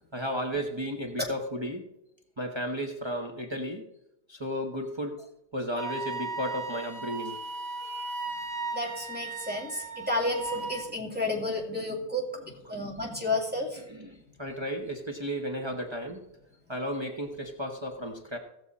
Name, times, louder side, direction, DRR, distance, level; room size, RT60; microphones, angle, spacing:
voice 1, 0.1-1.9 2.4-3.8 4.3-5.3 5.5-7.4 12.7-12.8 13.9-16.2 16.7-18.4, equal, 25° right, 2 dB, 1.1 m, -34 dB
Wind instrument woodwind instrument, 5.8-10.9, right 3 dB, 75° right, 2.2 m, -36 dB
voice 2, 8.7-13.8, left 2 dB, 10° right, -2 dB, 2.5 m, -31 dB
17.0 x 6.8 x 4.2 m, 0.84 s
omnidirectional pair, 1.1 m